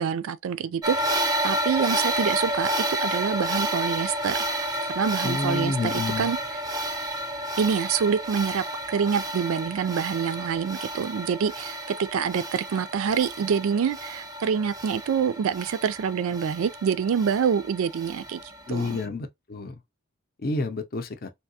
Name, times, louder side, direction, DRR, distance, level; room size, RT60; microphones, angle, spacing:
voice 1, 0.0-2.7 3.0-4.7 5.0-6.6 7.6-18.4 18.7-19.0, right 7 dB, 85° right, 0.4 m, -26 dB
sound 1, 0.8-19.0, right 1 dB, 20° right, 0.5 m, -31 dB
voice 2, 5.2-6.3 18.7-19.7 20.4-21.3, left 3 dB, 45° left, 0.5 m, -29 dB
3.4 x 2.7 x 2.7 m
head